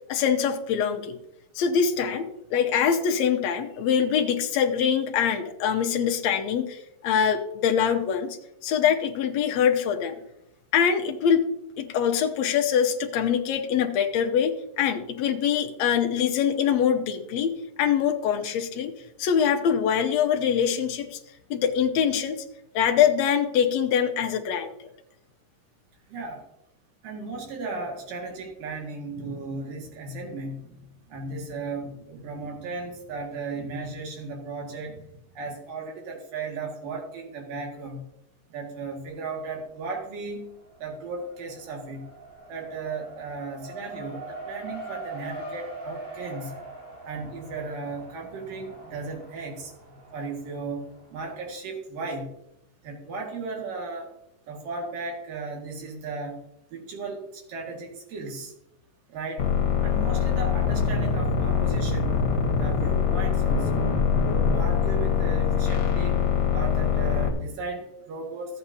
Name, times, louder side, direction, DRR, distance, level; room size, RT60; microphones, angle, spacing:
voice 1, 0.1-1.1 1.5-8.4 8.6-10.2 10.7-11.5 11.8-17.5 17.8-18.9 19.2-21.2 21.5-22.4 22.7-24.7, left 8 dB, 70° left, 4 dB, 1.7 m, -24 dB
voice 2, 26.1-26.4 27.0-35.1 35.4-38.1 38.5-40.5 40.8-42.1 42.5-46.6 47.1-49.7 50.1-52.3 52.8-54.1 54.5-56.4 56.7-58.5 59.1-59.5 59.8-62.2 62.6-63.9 64.3-66.2 66.5-68.6, right 3 dB, 70° right, 0 dB, 3.7 m, -36 dB
Race car auto racing, 39.1-39.8 40.1-51.5, right 2 dB, 40° right, 4.6 m, -42 dB
sound 1, 59.4-67.3, left 6 dB, 50° left, 2.4 m, -23 dB
14.5 x 8.9 x 2.8 m, 0.83 s
omnidirectional pair, 4.1 m